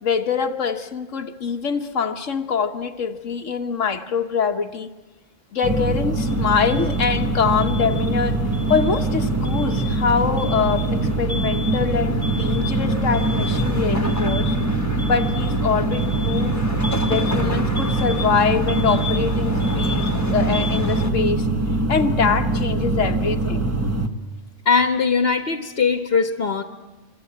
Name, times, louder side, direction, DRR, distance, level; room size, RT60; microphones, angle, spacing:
voice 1, 0.0-4.9 5.5-8.4 8.7-14.5 15.0-16.6 17.1-21.5 21.9-23.7, left 6 dB, 80° left, 6 dB, 1.6 m, -24 dB
sound 1, 5.6-24.1, right 2 dB, 10° right, 1.5 m, -23 dB
sound 2, 6.3-21.1, left 1 dB, 15° left, 1.6 m, -30 dB
voice 2, 24.6-26.6, left 5 dB, 55° left, 8 dB, 1.5 m, -20 dB
26.0 x 23.5 x 8.6 m, 1.2 s
omnidirectional pair, 1.3 m